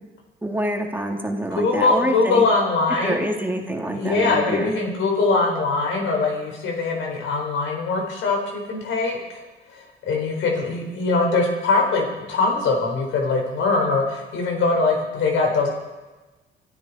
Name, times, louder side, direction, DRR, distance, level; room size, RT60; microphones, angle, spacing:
voice 1, 0.4-2.5 3.0-4.8, right 1 dB, 10° right, 1 dB, 2.2 m, -26 dB
voice 2, 1.5-3.3 3.9-9.2 9.7-15.7, left 3 dB, 80° left, 1 dB, 4.3 m, -22 dB
24.0 x 13.0 x 4.2 m, 1.2 s
cardioid pair, 90°, 20 cm